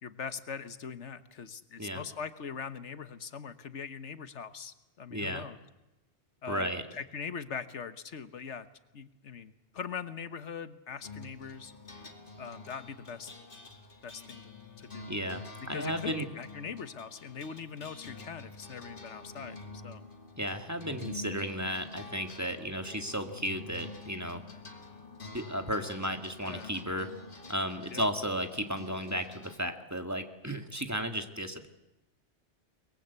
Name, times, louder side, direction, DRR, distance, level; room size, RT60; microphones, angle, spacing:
voice 1, 0.0-5.6 6.4-8.7 8.9-11.7 12.4-13.3 14.0-15.1 15.7-20.0 26.4-26.7 27.9-28.1, left 6 dB, 90° left, 12 dB, 1.5 m, -41 dB
voice 2, 5.1-5.5 6.5-6.8 15.1-16.3 20.4-24.4 25.3-27.1 27.5-31.7, equal, 15° right, 6 dB, 2.1 m, -34 dB
sound 1, 11.0-29.6, left 3 dB, 50° left, 2.6 m, -47 dB
23.5 x 22.0 x 8.2 m, 0.98 s
omnidirectional pair, 1.2 m